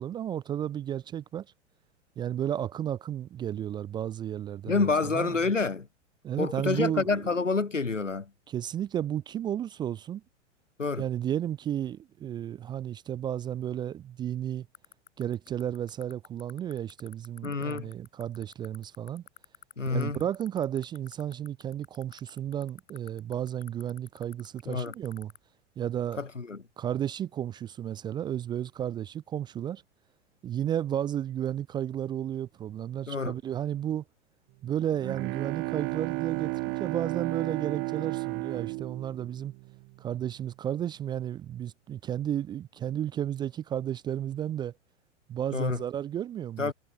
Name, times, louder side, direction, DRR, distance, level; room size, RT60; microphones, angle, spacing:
voice 1, 0.0-1.5 2.2-5.4 6.2-7.2 8.5-10.2 11.0-14.7 15.2-19.2 19.9-25.3 25.8-26.2 26.8-29.8 30.4-34.0 34.6-39.5 40.0-44.7 45.3-46.7, right 10 dB, 10° right, 0.4 m, -33 dB
voice 2, 4.6-5.9 6.4-8.3 10.8-11.0 17.4-17.9 19.8-20.2 24.7-24.9 26.2-26.6 33.1-33.3 45.5-45.8 46.6-46.7, left 4 dB, 90° left, 1.7 m, -28 dB
sound 1, 14.7-25.4, left 13 dB, 25° left, 1.6 m, -48 dB
Bowed string instrument, 34.7-40.2, right 30 dB, 30° right, 0.9 m, -33 dB
figure-of-eight pair, 105°, 36 cm